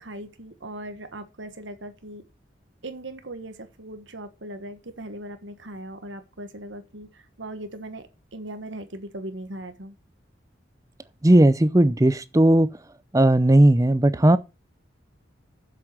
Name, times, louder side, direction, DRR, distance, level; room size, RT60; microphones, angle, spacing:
voice 1, 0.0-2.2 2.8-10.0, right 1 dB, 75° right, 1.4 m, -39 dB
voice 2, 11.2-12.8 13.1-14.4, right 1 dB, 15° right, 0.5 m, -17 dB
7.6 x 7.4 x 7.7 m
head